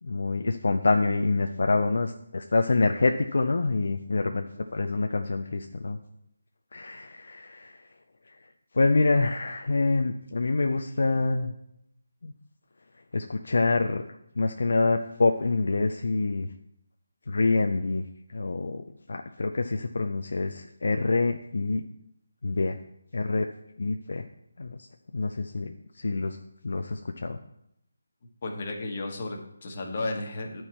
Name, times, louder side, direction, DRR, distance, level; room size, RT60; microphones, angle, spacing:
voice 1, 0.0-4.5 4.7-6.0 6.7-7.8 8.7-11.5 12.2-12.3 13.1-14.0 14.4-16.5 17.3-18.1 18.3-21.8 22.4-22.8 23.1-23.5 23.8-24.3 24.6-24.9 25.1-26.4 26.6-27.4, left 3 dB, 65° left, 5 dB, 0.5 m, -26 dB
voice 2, 28.4-30.6, left 2 dB, 40° left, 2 dB, 1.3 m, -33 dB
9.7 x 4.6 x 4.3 m, 0.78 s
figure-of-eight pair, 160°, 0 cm